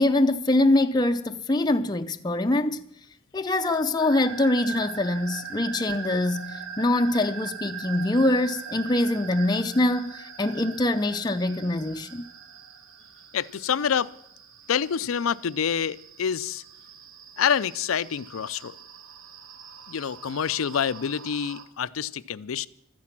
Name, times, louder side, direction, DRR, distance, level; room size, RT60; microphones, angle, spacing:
voice 1, 0.0-2.8 3.3-12.3, left 1 dB, 20° left, 0.5 m, -24 dB
sound 1, 4.0-21.6, right 7 dB, 80° right, 1.4 m, -41 dB
voice 2, 13.3-14.1 14.7-16.6 17.4-18.8 19.9-22.7, left 7 dB, 90° left, 0.5 m, -27 dB
14.5 x 13.5 x 5.9 m
head